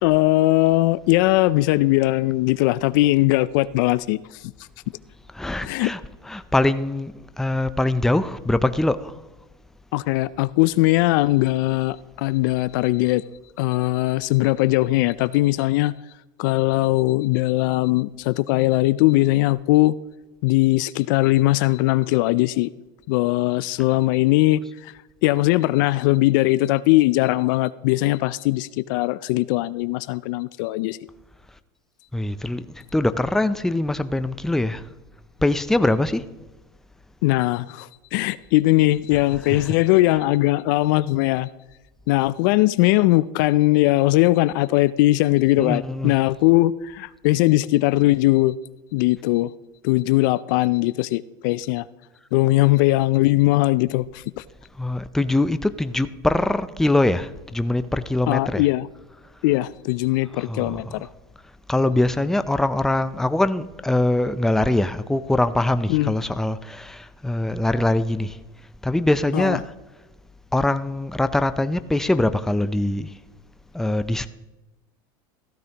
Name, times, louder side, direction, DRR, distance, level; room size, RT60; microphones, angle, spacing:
voice 1, 0.0-4.2 5.6-5.9 9.9-13.2 13.6-15.9 16.4-19.9 20.4-22.7 23.1-24.9 25.2-31.0 37.2-41.5 42.1-48.6 48.9-49.5 49.8-51.8 52.3-54.4 58.3-58.9 59.4-61.1 65.9-66.1 69.3-69.6, left 18 dB, 70° left, 0.4 m, -20 dB
voice 2, 5.3-9.2 32.1-34.9 35.4-36.3 39.5-39.6 45.6-46.1 54.8-58.6 60.5-61.1 61.7-68.4 68.8-69.7 70.5-73.1 73.7-74.3, left 2 dB, 5° left, 0.4 m, -23 dB
14.5 x 13.5 x 2.9 m
supercardioid pair, 110°, 11 cm